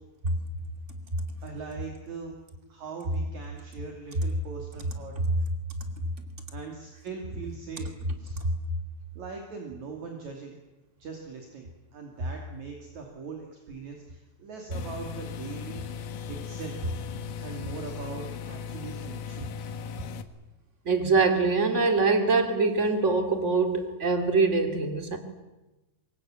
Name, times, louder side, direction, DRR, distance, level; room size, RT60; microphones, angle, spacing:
voice 1, 1.4-2.4 2.7-5.1 6.5-7.9 8.2-8.4 9.2-10.5 11.0-15.8 16.3-16.9 17.4-19.7, right 5 dB, 55° right, 2 dB, 3.9 m, -41 dB
sound 1, 14.7-20.2, left 6 dB, 75° left, 3.0 m, -37 dB
voice 2, 20.8-25.2, right 4 dB, 20° right, 6 dB, 2.6 m, -24 dB
24.5 x 21.5 x 9.0 m, 1.1 s
omnidirectional pair, 4.0 m